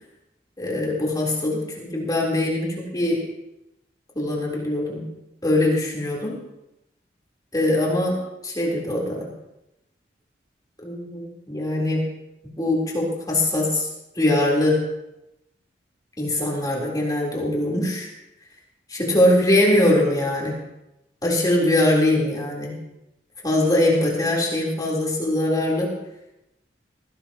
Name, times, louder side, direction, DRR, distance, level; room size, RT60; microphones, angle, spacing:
voice 1, 0.6-3.2 4.1-5.1 5.4-6.4 7.5-8.2 8.4-9.3 10.8-12.0 12.6-13.9 14.1-14.8 16.2-18.1 18.9-20.5 21.2-22.8 23.4-25.9, left 1 dB, 20° left, -3 dB, 3.8 m, -22 dB
19.0 x 17.0 x 3.0 m, 0.90 s
head